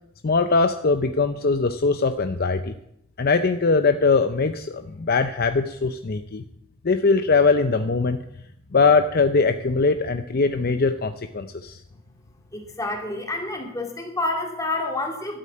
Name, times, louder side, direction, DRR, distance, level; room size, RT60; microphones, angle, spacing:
voice 1, 0.2-2.7 3.2-6.4 6.8-8.2 8.7-11.8, left 4 dB, 50° left, 8 dB, 0.6 m, -21 dB
voice 2, 12.5-15.4, left 2 dB, 15° left, 2 dB, 2.6 m, -28 dB
13.0 x 8.5 x 8.5 m, 0.77 s
head